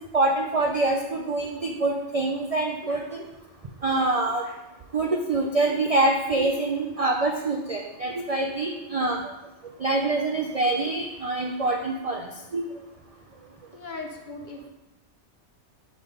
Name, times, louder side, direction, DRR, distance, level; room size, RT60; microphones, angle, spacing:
voice 1, 0.1-3.2 3.8-4.4 4.9-9.2 9.8-12.6, right 2 dB, 50° right, 1 dB, 0.4 m, -25 dB
voice 2, 13.7-14.7, left 3 dB, 45° left, 2 dB, 0.8 m, -39 dB
6.1 x 3.6 x 5.2 m, 0.95 s
omnidirectional pair, 1.2 m